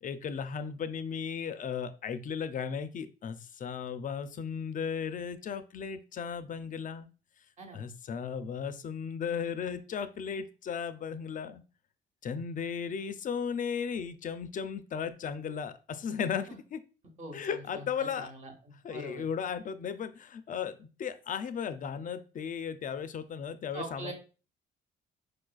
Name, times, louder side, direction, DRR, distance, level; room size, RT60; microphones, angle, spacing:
voice 1, 0.0-7.1 7.7-11.6 12.2-16.8 17.3-18.3 18.8-24.1, left 7 dB, 40° left, 11 dB, 0.4 m, -36 dB
voice 2, 17.2-19.3 23.7-24.1, right 2 dB, 35° right, 2 dB, 1.1 m, -44 dB
4.7 x 2.3 x 2.3 m, 0.35 s
cardioid pair, 90°, 20 cm